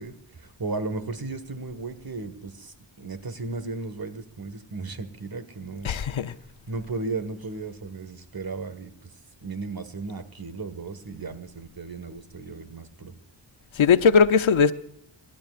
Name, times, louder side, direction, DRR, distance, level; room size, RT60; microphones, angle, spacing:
voice 1, 0.0-5.9 6.7-9.1 9.4-13.1, right 3 dB, 50° right, 10 dB, 1.8 m, -35 dB
voice 2, 5.8-6.3 13.8-14.7, left 6 dB, 85° left, 10 dB, 0.9 m, -19 dB
27.5 x 12.0 x 2.5 m, 0.70 s
cardioid pair, 50°, 46 cm